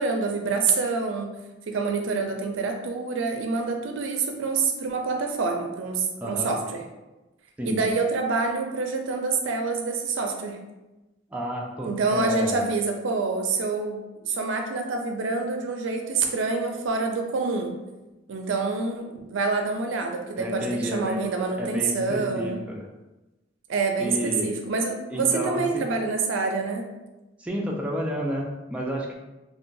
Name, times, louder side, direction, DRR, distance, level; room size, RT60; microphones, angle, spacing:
voice 1, 0.0-1.3 1.7-6.8 7.6-10.6 11.8-17.7 18.3-22.6 23.7-26.9, right 4 dB, 75° right, 3 dB, 0.4 m, -27 dB
voice 2, 6.2-6.5 7.6-7.7 11.3-12.7 20.4-21.2 21.6-22.9 24.0-24.5 25.1-25.6 27.4-29.1, equal, 5° right, -3 dB, 0.3 m, -30 dB
2.9 x 2.2 x 2.6 m, 1.1 s
head